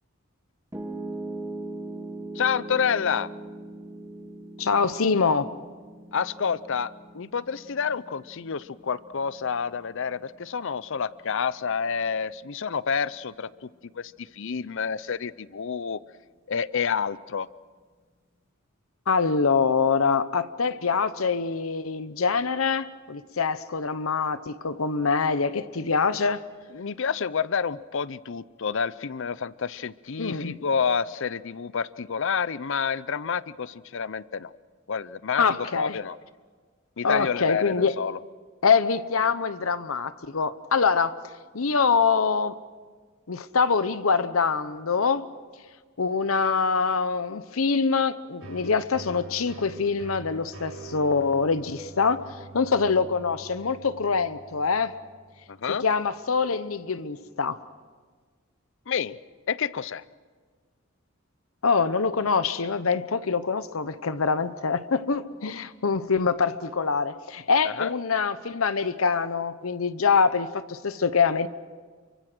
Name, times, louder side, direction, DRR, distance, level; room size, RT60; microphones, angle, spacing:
Piano, 0.7-12.9, right 2 dB, 15° right, 1.8 m, -41 dB
voice 1, 2.4-3.3 6.1-16.0 16.5-17.5 26.7-34.5 34.9-36.2 37.0-38.2 55.5-55.8 58.9-59.2 59.5-60.0 67.7-67.9, left 6 dB, 65° left, 18 dB, 0.6 m, -29 dB
voice 2, 4.6-5.5 19.1-26.4 30.2-30.6 35.4-36.0 37.0-37.9 38.6-41.1 41.5-42.6 43.3-45.2 46.0-52.2 52.5-54.9 55.8-57.6 61.6-71.5, left 5 dB, 90° left, 13 dB, 0.9 m, -24 dB
sound 1, 48.4-55.9, right 3 dB, 70° right, 6.9 m, -45 dB
29.0 x 24.0 x 6.2 m, 1.5 s
head